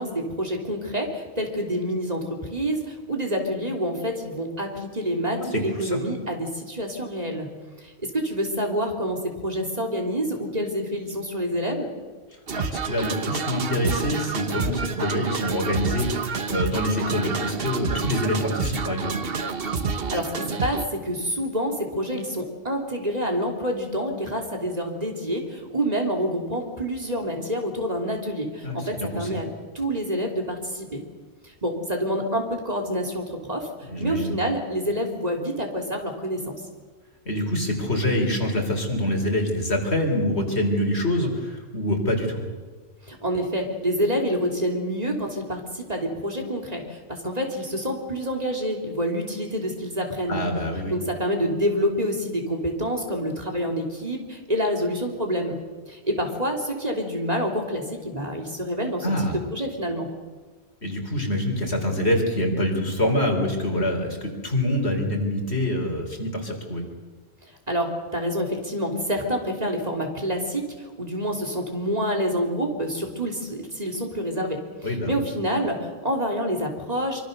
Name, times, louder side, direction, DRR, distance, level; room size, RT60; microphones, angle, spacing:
voice 1, 0.0-7.5 7.8-11.9 19.9-29.5 29.7-31.0 31.4-33.7 34.0-36.6 43.0-50.4 50.9-55.6 55.9-59.1 59.5-60.1 67.7-77.2, equal, 35° right, 2 dB, 3.3 m, -27 dB
voice 2, 5.4-6.0 12.5-19.2 28.6-29.4 33.9-34.4 37.3-42.4 50.3-51.0 59.0-59.4 60.8-66.8 74.8-75.2, left 1 dB, 75° left, 2 dB, 4.2 m, -25 dB
sound 1, 12.5-20.9, right 5 dB, 60° right, 1.3 m, -28 dB
25.0 x 24.5 x 6.7 m, 1.4 s
omnidirectional pair, 1.1 m